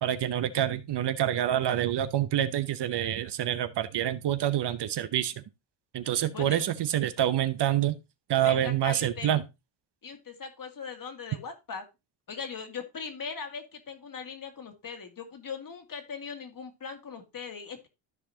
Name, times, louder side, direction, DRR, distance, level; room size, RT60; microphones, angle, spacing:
voice 1, 0.0-5.4 5.9-8.0 8.3-9.4, right 11 dB, 60° right, 0.9 m, -27 dB
voice 2, 6.3-6.7 8.4-9.3 10.0-11.9 12.3-17.9, left 5 dB, 45° left, 1.9 m, -40 dB
13.0 x 4.8 x 2.8 m
cardioid pair, 90°, 46 cm